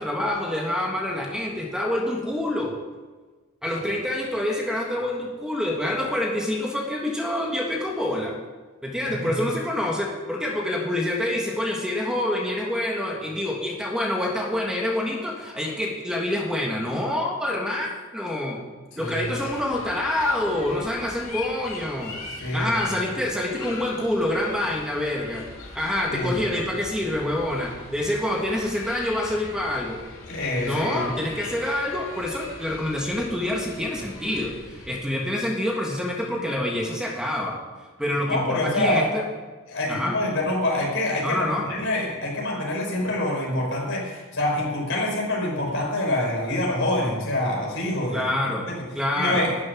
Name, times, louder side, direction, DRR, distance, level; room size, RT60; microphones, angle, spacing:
voice 1, 0.0-2.7 3.6-8.4 8.8-18.6 19.0-22.2 22.5-25.5 25.8-30.0 30.6-37.6 38.0-39.2 39.9-40.2 41.2-41.7 48.1-48.7 48.9-49.4, left 1 dB, 5° right, -1 dB, 1.6 m, -27 dB
voice 2, 18.9-19.3 22.4-22.7 26.1-26.4 30.3-31.2 38.3-39.1 39.7-48.3 48.7-48.8 49.1-49.5, left 1 dB, 60° left, -2 dB, 5.5 m, -26 dB
sound 1, 19.0-35.0, left 3 dB, 75° left, 3.7 m, -41 dB
12.0 x 7.8 x 9.7 m, 1.3 s
head